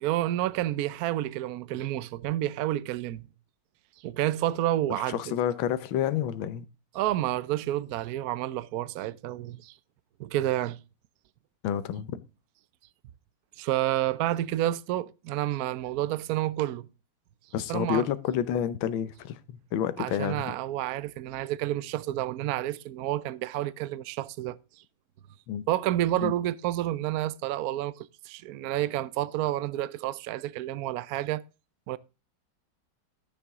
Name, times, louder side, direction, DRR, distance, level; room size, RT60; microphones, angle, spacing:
voice 1, 0.0-3.3 4.0-5.2 6.9-9.7 10.2-10.8 13.6-16.9 17.7-18.0 20.0-24.6 25.7-31.4 31.9-32.0, right 14 dB, 75° right, 0.8 m, -29 dB
voice 2, 5.1-6.6 11.6-12.2 17.5-20.5 25.5-25.6 26.2-26.3, left 10 dB, 75° left, 1.6 m, -29 dB
12.0 x 7.1 x 3.6 m
omnidirectional pair, 2.2 m